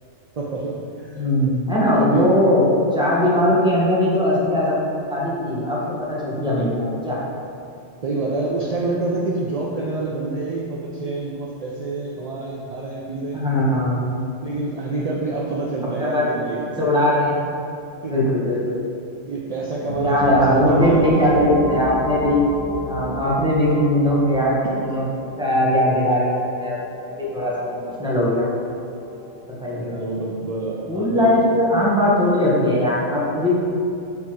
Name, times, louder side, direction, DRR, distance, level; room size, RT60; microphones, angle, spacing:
voice 1, 0.4-1.3 1.9-2.2 8.0-13.4 14.4-16.7 18.0-18.3 19.2-21.1 24.6-24.7 29.6-31.4, right 3 dB, 50° right, -3 dB, 0.5 m, -27 dB
voice 2, 1.1-4.8 5.1-5.8 6.1-7.2 13.3-14.0 16.0-16.3 16.7-17.4 18.1-18.8 20.0-22.4 22.8-24.5 24.8-25.0 25.4-26.8 27.1-28.5 29.6-30.0 30.9-33.5, left 1 dB, 5° right, -7 dB, 1.2 m, -19 dB
sound 1, 19.9-29.4, equal, 55° left, 1.8 m, -32 dB
6.8 x 4.2 x 4.6 m, 2.6 s
omnidirectional pair, 1.3 m